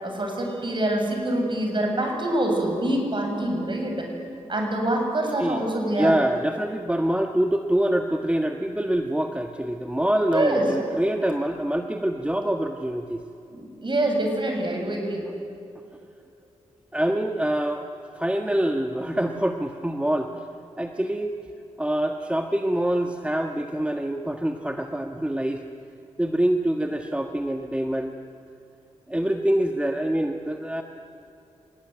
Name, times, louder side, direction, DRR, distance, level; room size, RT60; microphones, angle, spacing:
voice 1, 0.0-4.1 4.5-6.1 10.3-10.7 13.5-15.2, right 1 dB, 40° right, 2 dB, 7.6 m, -25 dB
voice 2, 5.9-13.2 16.9-17.9 18.1-20.4 20.8-21.4 21.8-25.6 26.2-28.1 29.1-30.8, right 1 dB, 10° right, 4 dB, 1.5 m, -25 dB
27.0 x 19.0 x 9.3 m, 2.7 s
cardioid pair, 55°, 13 cm